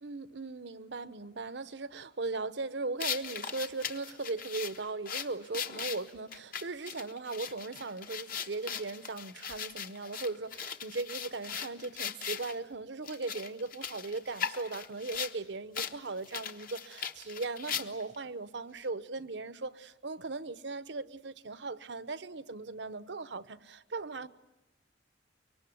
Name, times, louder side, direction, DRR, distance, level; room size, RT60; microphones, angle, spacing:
voice 1, 0.0-24.3, right 3 dB, 65° right, 0.9 m, -38 dB
sound 1, 3.0-12.5 13.0-15.4 15.7-15.9 16.2-18.2, left 7 dB, 50° left, 1.3 m, -39 dB
25.0 x 23.5 x 9.3 m
head